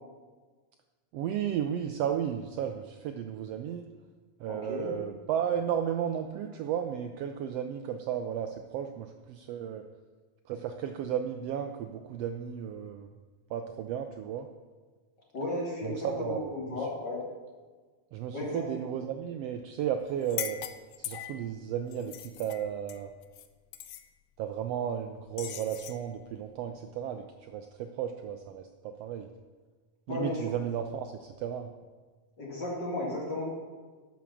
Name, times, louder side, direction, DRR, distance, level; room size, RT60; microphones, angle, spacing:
voice 1, 1.1-3.9 4.4-9.8 10.5-13.1 13.5-14.5 15.8-16.9 18.1-20.6 21.0-23.1 24.4-29.3 30.1-31.7, right 9 dB, 90° right, 7 dB, 1.4 m, -34 dB
voice 2, 4.5-5.0 15.3-17.2 18.3-18.6 30.1-30.4 32.4-33.4, left 2 dB, 35° left, -4 dB, 3.1 m, -34 dB
sound 1, 20.2-21.5 21.9-23.5 23.7-24.0 25.4-26.0, left 12 dB, 75° left, 1.8 m, -40 dB
12.0 x 6.2 x 7.1 m, 1.4 s
omnidirectional pair, 3.5 m